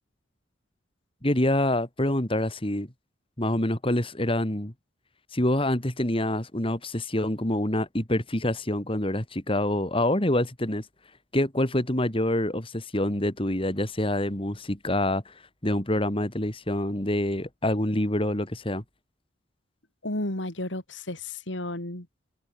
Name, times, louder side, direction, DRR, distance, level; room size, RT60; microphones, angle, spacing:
voice 1, 1.2-2.9 3.4-4.7 5.3-10.8 11.3-15.3 15.6-18.8, left 1 dB, 30° left, 2.8 m, -26 dB
voice 2, 20.0-22.1, left 1 dB, 75° left, 3.7 m, -32 dB
head